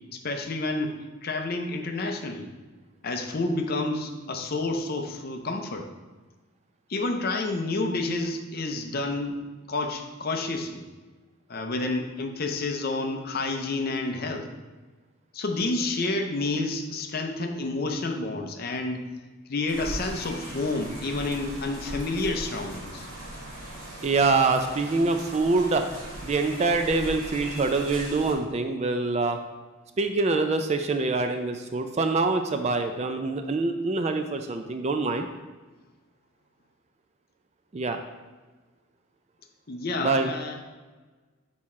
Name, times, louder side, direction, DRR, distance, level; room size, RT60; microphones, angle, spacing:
voice 1, 0.1-0.9 1.2-2.5 3.0-5.9 6.9-9.4 9.7-10.8 11.5-14.5 15.3-19.0 19.5-23.1 39.7-40.6, left 2 dB, 45° left, 4 dB, 0.6 m, -29 dB
sound 1, 19.7-28.3, right 1 dB, 80° right, 1.7 m, -39 dB
voice 2, 24.0-25.9 26.2-29.4 30.0-35.3 37.7-38.0 40.0-40.3, right 3 dB, 30° right, 6 dB, 0.3 m, -25 dB
6.2 x 4.3 x 3.6 m, 1.3 s
head